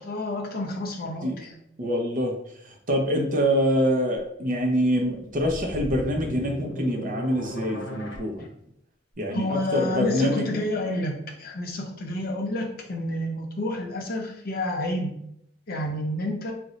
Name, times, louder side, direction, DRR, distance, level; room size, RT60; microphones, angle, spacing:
voice 1, 0.0-1.6 9.3-15.1 15.7-16.5, left 1 dB, 55° left, 2 dB, 0.6 m, -29 dB
voice 2, 1.8-2.4 2.6-8.5 9.2-10.5, equal, 45° right, 2 dB, 0.6 m, -25 dB
sound 1, 5.2-8.2, equal, 90° left, 0.6 m, -36 dB
2.5 x 2.1 x 3.9 m, 0.75 s
head